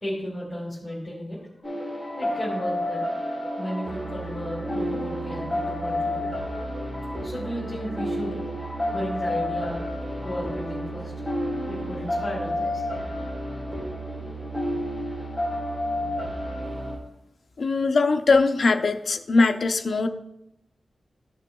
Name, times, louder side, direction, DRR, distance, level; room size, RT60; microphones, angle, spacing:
voice 1, 0.0-1.7 2.2-3.0 3.6-6.2 7.2-8.4 8.9-9.8 10.2-11.1 11.7-13.0 13.9-14.0 14.6-14.7, equal, 15° left, -5 dB, 2.2 m, -34 dB
sound 1, 1.6-17.0, left 1 dB, 30° right, 3.3 m, -30 dB
voice 2, 17.6-20.1, left 3 dB, 55° left, 6 dB, 0.6 m, -21 dB
14.5 x 6.5 x 2.3 m, 0.87 s
wide cardioid pair, 175°, 0 cm